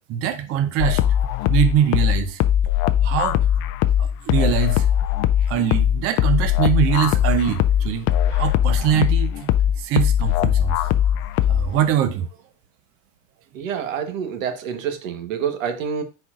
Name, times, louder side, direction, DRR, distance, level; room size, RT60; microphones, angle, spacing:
voice 1, 0.1-1.2 1.5-2.4 3.0-3.4 4.0-4.9 5.5-9.5 9.8-10.8 11.5-12.3, right 10 dB, 35° right, 0.7 m, -23 dB
sound 1, 0.8-11.8, left 11 dB, 35° left, 0.4 m, -20 dB
voice 2, 13.5-16.0, right 7 dB, 85° right, 1.3 m, -27 dB
9.9 x 4.4 x 2.5 m
supercardioid pair, 130°, 38 cm